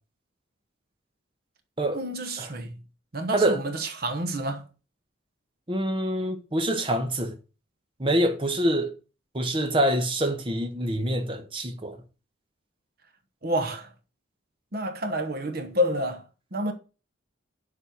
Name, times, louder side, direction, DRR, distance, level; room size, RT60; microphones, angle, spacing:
voice 1, 1.9-2.8 3.1-4.6 13.4-13.9 14.7-16.2 16.5-16.7, equal, 50° right, 1.1 m, -29 dB
voice 2, 5.7-7.3 8.0-8.9 9.3-12.0, right 1 dB, 25° right, 1.0 m, -25 dB
7.0 x 5.4 x 6.1 m
head